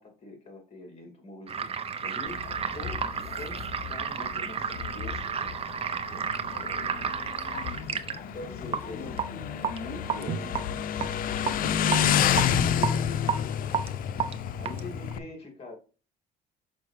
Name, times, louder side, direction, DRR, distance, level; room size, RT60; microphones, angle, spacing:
voice 1, 0.0-5.5 6.1-6.3 8.3-9.2 9.6-10.7 11.5-13.9 14.5-15.7, left 2 dB, 35° left, 2.6 m, -44 dB
sound 1, 1.5-15.1, right 7 dB, 35° right, 0.7 m, -32 dB
Motorcycle, 2.3-15.2, left 9 dB, 55° left, 0.5 m, -30 dB
voice 2, 7.4-9.7 10.1-12.4 14.7-15.3, left 4 dB, 15° left, 3.6 m, -47 dB
6.0 x 5.3 x 3.3 m
cardioid pair, 110°, 17 cm